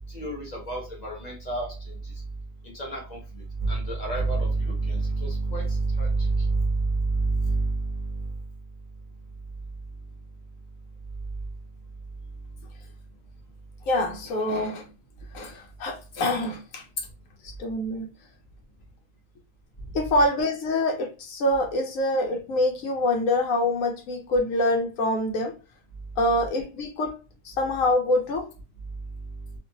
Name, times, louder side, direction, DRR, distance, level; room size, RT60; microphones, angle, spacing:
voice 1, 0.1-2.1 2.6-8.4, right 3 dB, 35° left, 1.1 m, -27 dB
voice 2, 13.9-14.9 15.3-17.1 17.4-18.1 19.9-25.5 26.2-27.2 27.4-28.5, left 1 dB, 85° left, 1.0 m, -25 dB
2.6 x 2.6 x 2.8 m
omnidirectional pair, 1.4 m